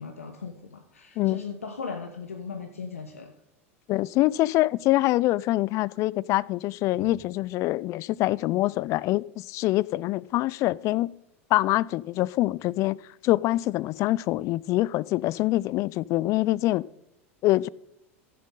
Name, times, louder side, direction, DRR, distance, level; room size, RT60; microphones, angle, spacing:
voice 1, 0.0-3.3 6.9-7.1, left 5 dB, 90° left, 0.9 m, -38 dB
voice 2, 3.9-11.1 11.5-13.0 13.2-16.8 17.4-17.7, left 17 dB, 45° left, 0.3 m, -25 dB
15.0 x 7.5 x 3.8 m
hypercardioid pair, 90°, 7 cm